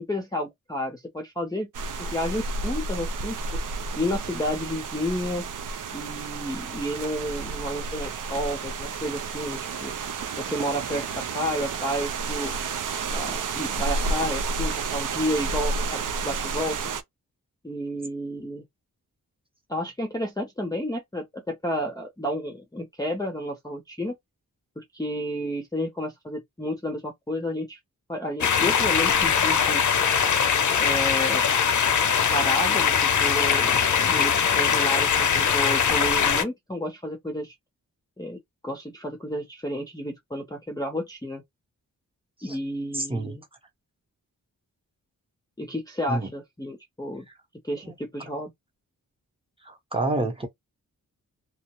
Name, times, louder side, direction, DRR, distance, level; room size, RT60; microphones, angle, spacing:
voice 1, 0.0-1.7 2.0-3.6 3.9-5.4 5.9-9.9 10.4-12.5 13.1-16.8 17.6-18.6 19.7-24.1 24.8-27.8 28.1-29.8 30.8-31.4 32.3-37.5 38.2-41.4 42.4-43.4 45.6-47.3 47.6-48.5, equal, 10° left, 0.5 m, -31 dB
sound 1, 1.7-17.0, right 4 dB, 60° right, 0.5 m, -31 dB
sound 2, 28.4-36.4, left 7 dB, 55° left, 0.6 m, -21 dB
voice 2, 42.9-43.4 46.1-46.3 47.8-47.9 49.6-50.5, right 2 dB, 15° right, 0.8 m, -28 dB
2.3 x 2.0 x 2.9 m
wide cardioid pair, 95°, 35 cm